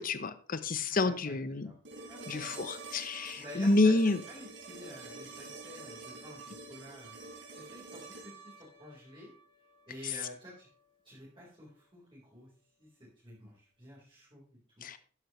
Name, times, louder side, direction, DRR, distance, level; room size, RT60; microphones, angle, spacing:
voice 1, 0.0-1.7 2.3-4.2 14.8-15.0, left 2 dB, 45° left, 12 dB, 0.8 m, -29 dB
voice 2, 0.8-1.4 1.6-1.7 2.1-2.7 3.3-7.2 7.5-9.3 9.9-10.7 11.0-12.5 12.8-12.9 13.2-14.8, equal, 25° right, -6 dB, 4.2 m, -50 dB
sound 1, 1.8-9.9 12.0-12.1, right 3 dB, 80° right, 4.1 m, -48 dB
12.5 x 9.7 x 3.2 m, 0.41 s
head